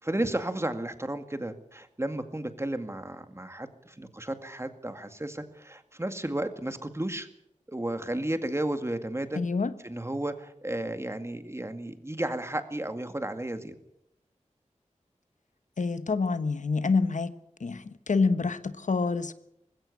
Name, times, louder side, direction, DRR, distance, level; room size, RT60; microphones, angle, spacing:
voice 1, 0.0-7.3 7.7-9.4 9.8-13.7, right 1 dB, 20° right, 2.1 m, -33 dB
voice 2, 9.4-9.7 15.8-17.3 17.6-19.3, left 4 dB, 85° left, 1.2 m, -27 dB
20.0 x 16.5 x 8.5 m
wide cardioid pair, 70°, 12 cm